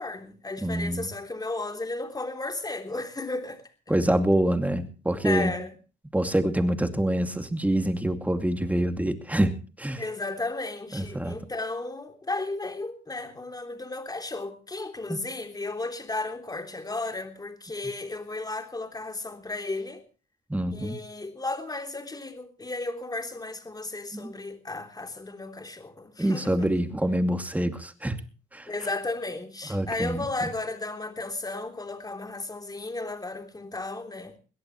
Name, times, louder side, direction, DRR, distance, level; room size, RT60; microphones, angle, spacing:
voice 1, 0.0-3.6 3.9-4.0 5.2-5.7 10.0-20.0 20.7-26.7 28.7-34.3, left 2 dB, 20° left, 3.4 m, -34 dB
voice 2, 0.6-1.1 3.9-5.5 6.1-10.0 10.9-11.3 15.1-15.2 20.5-21.0 24.1-24.3 26.2-28.2 28.5-28.7 29.7-30.2, right 1 dB, 5° right, 2.4 m, -26 dB
22.0 x 17.5 x 3.1 m
cardioid pair, 90°, 20 cm